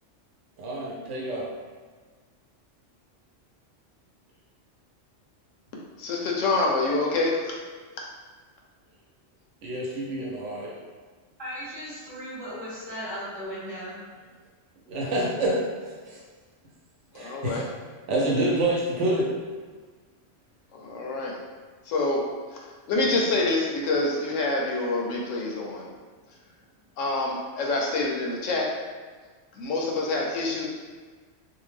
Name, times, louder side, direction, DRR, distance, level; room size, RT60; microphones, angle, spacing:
voice 1, 0.6-1.5 9.6-10.7 14.9-16.2 17.1-17.6 18.1-19.3, right 1 dB, 75° right, -4 dB, 1.0 m, -27 dB
voice 2, 6.0-7.5 17.1-17.7 20.7-21.4 21.9-22.2 22.5-22.6 22.9-25.9 27.0-28.7 29.6-30.7, left 2 dB, 85° left, -2 dB, 0.9 m, -26 dB
voice 3, 11.4-14.0, equal, 20° right, -10 dB, 1.1 m, -36 dB
2.7 x 2.1 x 3.2 m, 1.5 s
omnidirectional pair, 1.3 m